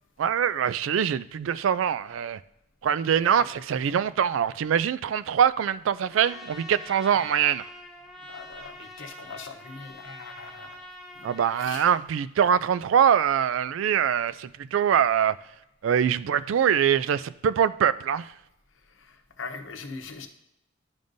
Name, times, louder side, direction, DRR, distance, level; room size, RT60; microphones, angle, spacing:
voice 1, 0.2-2.4 2.8-7.6 11.2-15.4 15.8-18.3, right 8 dB, 75° right, 0.3 m, -23 dB
voice 2, 3.1-3.5 8.3-10.8 11.2-11.3 11.6-11.9 18.9-20.3, left 4 dB, 75° left, 0.9 m, -41 dB
Trumpet, 6.1-11.9, left 1 dB, ahead, 0.9 m, -45 dB
11.0 x 5.2 x 2.6 m
head